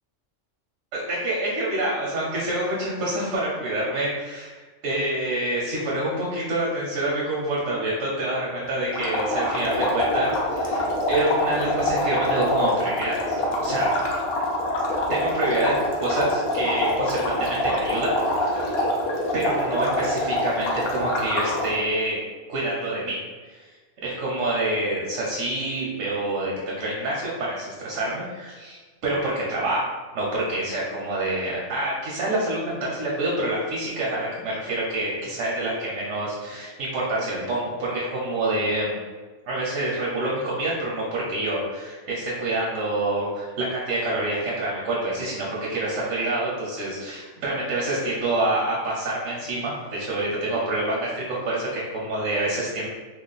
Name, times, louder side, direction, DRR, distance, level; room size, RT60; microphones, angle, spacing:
voice 1, 0.9-13.9 15.1-15.7 16.0-18.8 19.3-22.2 22.5-23.2 23.5-23.6 24.0-29.8 30.1-39.0 39.5-52.9, right 1 dB, 85° right, -5 dB, 1.1 m, -27 dB
sound 1, 8.9-21.7, left 1 dB, 60° left, 0.7 m, -25 dB
3.2 x 2.1 x 3.8 m, 1.4 s
omnidirectional pair, 1.3 m